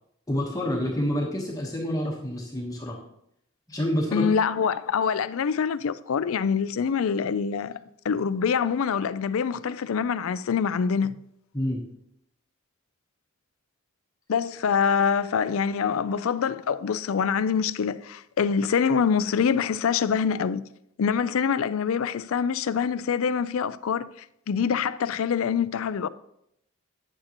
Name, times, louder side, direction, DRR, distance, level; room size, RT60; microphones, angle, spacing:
voice 1, 0.3-3.0 3.7-4.3 11.5-11.8, equal, 15° left, 1.1 m, -28 dB
voice 2, 4.1-7.8 8.0-11.2 14.3-20.6 21.0-24.1 24.5-26.1, left 6 dB, 80° left, 0.4 m, -25 dB
9.9 x 8.8 x 3.0 m
head